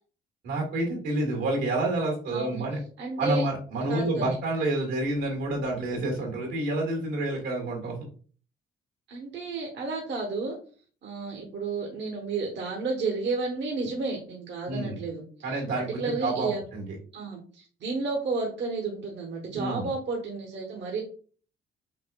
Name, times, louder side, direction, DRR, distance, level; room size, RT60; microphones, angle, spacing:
voice 1, 0.4-2.8 3.2-8.0 14.7-15.0 15.4-17.0 19.5-19.9, right 2 dB, 90° right, 0 dB, 1.8 m, -29 dB
voice 2, 2.3-2.6 3.0-3.4 3.9-4.4 9.1-10.6 11.0-15.2 15.5-16.6 17.1-21.0, right 3 dB, 65° right, -1 dB, 1.1 m, -32 dB
5.8 x 2.5 x 2.3 m, 0.41 s
cardioid pair, 90°, 20 cm